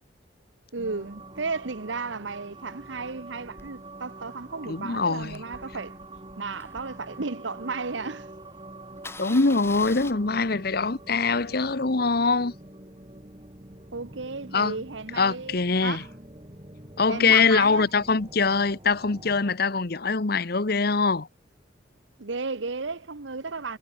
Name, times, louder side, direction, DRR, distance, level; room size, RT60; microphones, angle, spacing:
voice 1, 0.7-6.0 6.4-8.3 13.9-16.1 17.1-17.9 22.2-23.8, right 4 dB, 80° right, 1.2 m, -34 dB
sound 1, 0.8-19.6, right 2 dB, 25° right, 3.0 m, -46 dB
Engine starting, 3.6-7.8 8.2-8.3 8.5-8.7 9.0-10.1, left 3 dB, 15° left, 2.2 m, -45 dB
voice 2, 4.7-5.4 9.2-12.5 14.5-14.7 15.2-16.0 17.0-21.3, left 4 dB, 55° left, 1.0 m, -23 dB
head